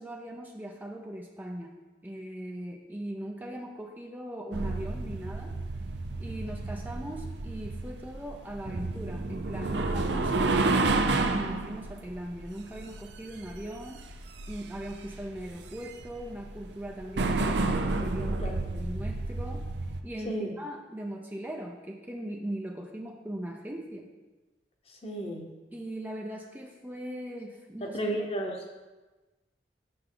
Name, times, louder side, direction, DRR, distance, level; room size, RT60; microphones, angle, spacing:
voice 1, 0.0-1.7 2.0-5.5 6.2-14.0 14.5-19.6 20.0-24.1 25.7-28.1, right 1 dB, 10° right, 1 dB, 0.5 m, -39 dB
sound 1, 4.5-20.0, right 2 dB, 70° right, 0.6 m, -31 dB
voice 2, 18.4-18.8 20.2-20.5 24.9-25.5 27.8-28.6, right 1 dB, 35° left, 1 dB, 1.0 m, -34 dB
6.8 x 6.7 x 3.8 m, 1.2 s
head